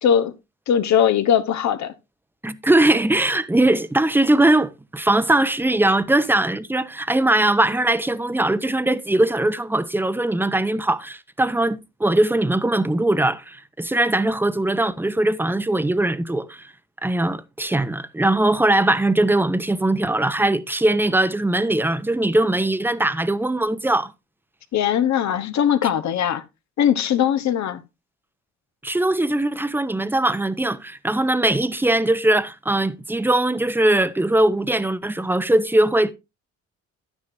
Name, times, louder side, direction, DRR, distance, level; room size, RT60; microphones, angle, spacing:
voice 1, 0.0-0.3 0.7-1.9 24.7-26.4 26.8-27.8, left 9 dB, 65° left, 1.1 m, -20 dB
voice 2, 2.4-16.7 17.0-24.1 28.8-36.1, right 1 dB, 5° right, 0.7 m, -20 dB
10.5 x 9.6 x 2.7 m
cardioid pair, 90°, 30 cm